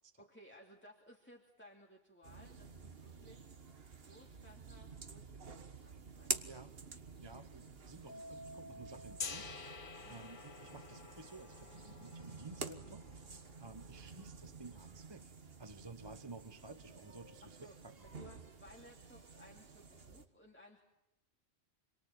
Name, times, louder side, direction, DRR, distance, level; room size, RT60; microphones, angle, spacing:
voice 1, 0.2-3.4 3.9-6.6 10.0-10.3 17.4-20.8, equal, 10° left, 0 dB, 2.9 m, -60 dB
sound 1, 2.2-20.3, right 4 dB, 60° right, 1.7 m, -49 dB
voice 2, 6.4-6.7 7.2-13.1 13.6-15.3 15.6-18.1, right 3 dB, 25° right, 9 dB, 1.1 m, -54 dB
Keyboard (musical), 8.1-10.6, equal, 10° right, 2.7 m, -54 dB
Gong, 9.2-15.1, left 5 dB, 50° left, 1.3 m, -50 dB
28.0 x 23.0 x 8.9 m, 0.89 s
omnidirectional pair, 1.1 m